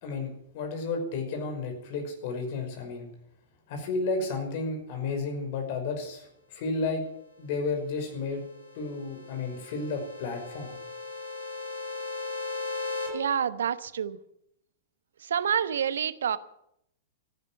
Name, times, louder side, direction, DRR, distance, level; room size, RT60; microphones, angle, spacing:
voice 1, 0.0-3.1 3.7-7.0 7.4-8.4 8.8-10.8, left 3 dB, 55° left, 4 dB, 5.7 m, -32 dB
sound 1, 8.1-13.1, left 3 dB, 85° left, 6.2 m, -37 dB
voice 2, 13.1-14.2 15.2-16.4, right 8 dB, 75° right, 15 dB, 0.9 m, -28 dB
14.0 x 11.0 x 9.5 m, 0.76 s
hypercardioid pair, 105°, 0 cm